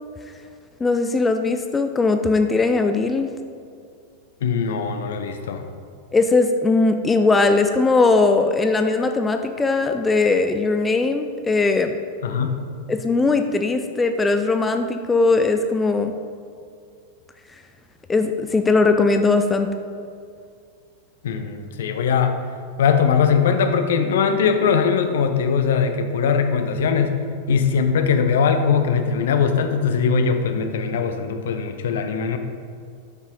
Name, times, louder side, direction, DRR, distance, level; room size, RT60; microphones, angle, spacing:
voice 1, 0.8-3.3 6.1-11.9 12.9-16.1 18.1-19.7, left 3 dB, 15° left, 7 dB, 0.4 m, -19 dB
voice 2, 4.4-5.6 12.2-12.5 12.8-12.9 21.2-22.3 22.8-27.2 27.5-32.4, left 6 dB, 60° left, 7 dB, 0.6 m, -20 dB
8.9 x 6.1 x 3.8 m, 2.3 s
figure-of-eight pair, 90°, 0 cm